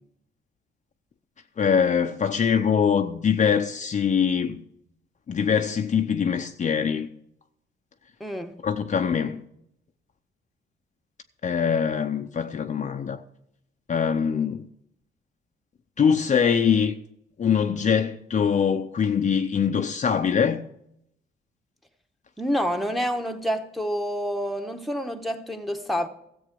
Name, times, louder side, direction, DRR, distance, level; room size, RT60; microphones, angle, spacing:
voice 1, 1.6-4.6 5.3-7.1 8.6-9.4 11.4-13.2 13.9-14.7 16.0-17.0 17.4-20.7, left 7 dB, 40° left, 0.6 m, -23 dB
voice 2, 8.2-8.5 22.4-26.1, equal, ahead, 1.1 m, -28 dB
13.5 x 7.9 x 5.3 m
cardioid pair, 90°, 20 cm